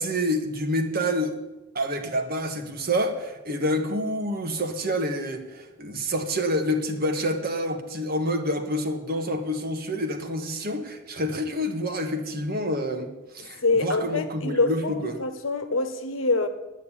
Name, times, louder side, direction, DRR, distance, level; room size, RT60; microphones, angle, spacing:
voice 1, 0.0-1.4 1.7-15.2, equal, 45° right, 1.6 m, -28 dB
voice 2, 13.6-16.5, left 3 dB, 75° left, 1.2 m, -25 dB
9.3 x 9.1 x 9.9 m
head